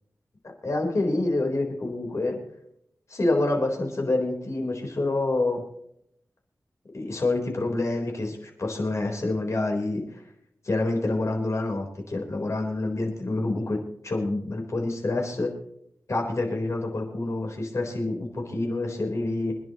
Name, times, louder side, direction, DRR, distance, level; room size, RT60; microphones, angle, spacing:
voice 1, 0.6-2.4 3.1-5.6 6.9-10.2 10.6-15.5 16.1-19.5, left 2 dB, 55° left, 2 dB, 4.1 m, -27 dB
26.5 x 10.5 x 3.1 m, 0.71 s
wide cardioid pair, 110°, 6 cm